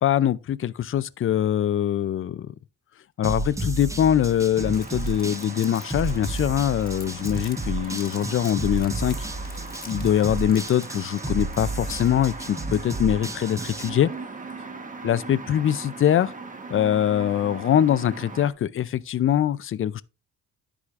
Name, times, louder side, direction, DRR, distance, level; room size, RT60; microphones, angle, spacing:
voice 1, 0.0-2.5 3.2-9.2 9.9-14.1 15.0-16.3 16.7-20.0, left 10 dB, 45° left, 0.5 m, -23 dB
sound 1, 3.2-13.9, right 2 dB, 10° right, 0.8 m, -32 dB
sound 2, 4.5-18.5, right 4 dB, 25° right, 1.2 m, -40 dB
Crumpling crinkling, 4.7-7.5 7.8-12.3, left 5 dB, 30° left, 1.5 m, -47 dB
13.0 x 4.9 x 2.4 m
cardioid pair, 90°, 30 cm